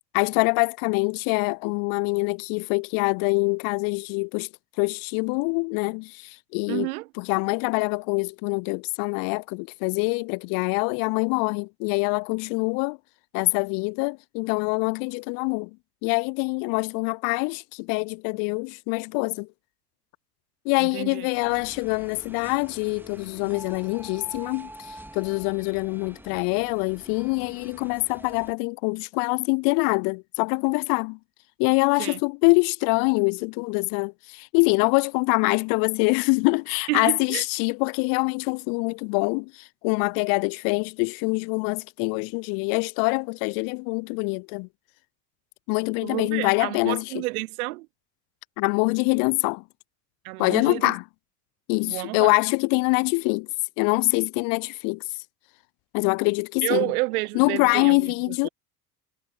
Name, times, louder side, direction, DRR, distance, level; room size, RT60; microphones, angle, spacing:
voice 1, 0.1-4.5 4.8-6.9 7.2-13.0 13.3-15.7 16.0-19.5 20.7-31.2 31.6-44.7 45.7-47.0 48.6-49.6 50.4-51.0 51.7-53.5 53.8-55.0 55.9-56.9 57.3-58.5, left 36 dB, 45° left, 0.5 m, -24 dB
voice 2, 6.7-7.1 20.8-21.3 32.0-32.2 36.9-37.4 46.0-47.9 50.2-50.9 51.8-52.3 56.6-58.5, right 23 dB, 65° right, 0.9 m, -30 dB
sound 1, 21.3-28.5, right 1 dB, 5° right, 2.1 m, -46 dB
figure-of-eight pair, 65°, 49 cm